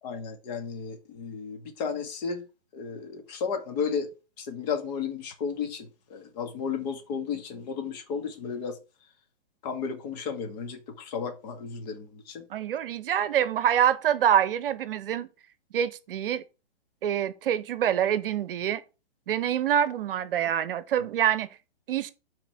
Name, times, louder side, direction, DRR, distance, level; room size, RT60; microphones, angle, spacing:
voice 1, 0.0-2.4 2.7-4.1 4.4-8.8 9.6-12.5, left 6 dB, 40° left, 2.0 m, -33 dB
voice 2, 12.5-15.3 15.7-16.4 17.0-18.8 19.3-21.6 21.9-22.1, right 9 dB, 55° right, 0.8 m, -26 dB
6.0 x 4.3 x 6.0 m
hypercardioid pair, 135°, 33 cm